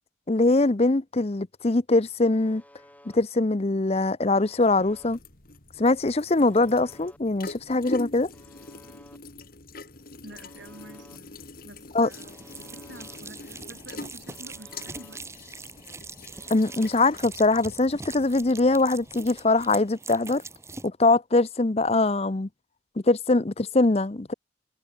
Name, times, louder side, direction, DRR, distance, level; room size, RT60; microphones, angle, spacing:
voice 1, 0.3-2.6 3.1-5.2 5.8-8.3 11.9-12.1 16.5-20.4 20.8-22.5 23.1-24.3, left 2 dB, 35° left, 0.7 m, -22 dB
Alarm, 2.3-3.2 4.3-5.2 6.3-7.2 8.3-9.2 10.3-11.2 12.3-13.2 14.3-15.2 16.3-17.2, left 1 dB, 10° left, 4.7 m, -54 dB
sound 1, 4.5-19.5, left 2 dB, 50° left, 2.7 m, -44 dB
voice 2, 10.2-11.4 11.6-15.2, right 1 dB, 80° right, 6.0 m, -48 dB
sound 2, 12.1-20.9, right 3 dB, 15° right, 3.3 m, -43 dB
head